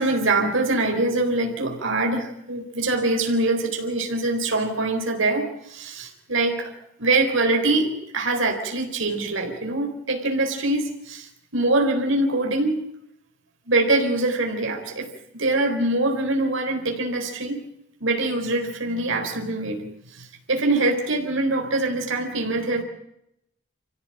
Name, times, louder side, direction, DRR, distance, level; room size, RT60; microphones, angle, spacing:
voice 1, 0.0-6.7 7.0-12.8 13.7-17.6 18.0-19.8 20.1-22.8, right 2 dB, 70° right, 3 dB, 3.9 m, -24 dB
27.5 x 16.5 x 9.0 m, 0.81 s
head